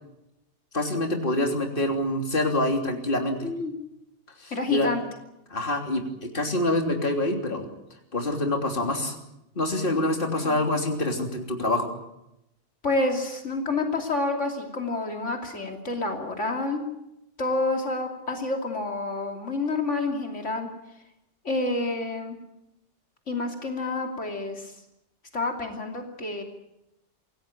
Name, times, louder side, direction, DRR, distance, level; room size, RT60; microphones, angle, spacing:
voice 1, 0.7-3.5 4.4-4.9 5.5-7.6 8.1-9.2 9.5-11.9, left 1 dB, 45° left, 3 dB, 3.5 m, -26 dB
voice 2, 3.4-3.7 4.5-5.0 10.4-10.6 12.8-16.8 17.4-20.7 21.4-22.4 23.3-24.7 25.3-26.4, left 2 dB, 75° left, 2 dB, 3.2 m, -28 dB
27.0 x 17.0 x 9.0 m, 0.87 s
omnidirectional pair, 1.2 m